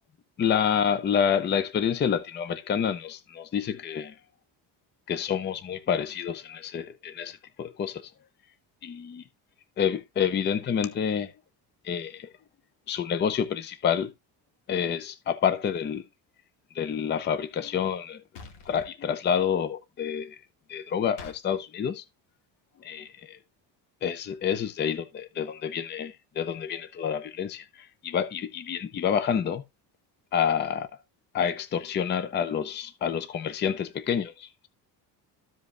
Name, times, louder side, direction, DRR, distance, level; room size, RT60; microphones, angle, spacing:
voice 1, 0.4-4.1 5.1-8.1 8.8-9.2 9.8-11.3 11.8-12.3 12.9-14.1 14.7-16.0 16.7-18.2 18.7-20.4 20.7-22.0 22.8-23.4 24.0-29.6 30.3-30.9 31.3-34.7, left 8 dB, 25° left, 0.6 m, -28 dB
sound 1, 18.4-18.9 21.2-21.4, left 5 dB, 80° left, 2.5 m, -44 dB
14.0 x 5.0 x 2.6 m
cardioid pair, 160°, 42 cm